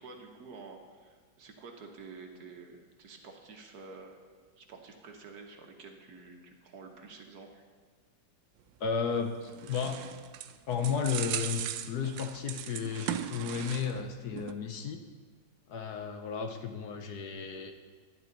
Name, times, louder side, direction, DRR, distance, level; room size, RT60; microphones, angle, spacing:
voice 1, 0.0-4.2 4.6-7.6, right 4 dB, 60° right, 3 dB, 1.5 m, -49 dB
voice 2, 8.8-10.0 10.7-15.0 15.7-17.7, left 6 dB, 65° left, 6 dB, 1.2 m, -33 dB
sound 1, 9.2-14.1 14.4-14.5, right 11 dB, 85° right, 1.3 m, -38 dB
11.5 x 10.5 x 3.9 m, 1.5 s
omnidirectional pair, 2.0 m